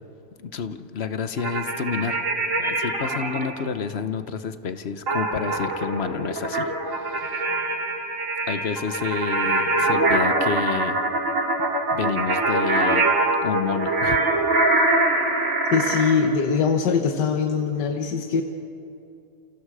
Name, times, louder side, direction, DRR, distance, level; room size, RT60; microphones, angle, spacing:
voice 1, 0.4-2.2 2.6-7.5 8.5-11.0 11.9-13.0 13.4-14.2, left 6 dB, 45° left, 10 dB, 1.0 m, -29 dB
sound 1, 1.4-3.5 5.1-16.2, right 2 dB, 50° right, 2.8 m, -23 dB
voice 2, 15.7-18.4, left 5 dB, 80° left, 4 dB, 1.8 m, -22 dB
29.0 x 28.0 x 4.9 m, 2.6 s
omnidirectional pair, 1.8 m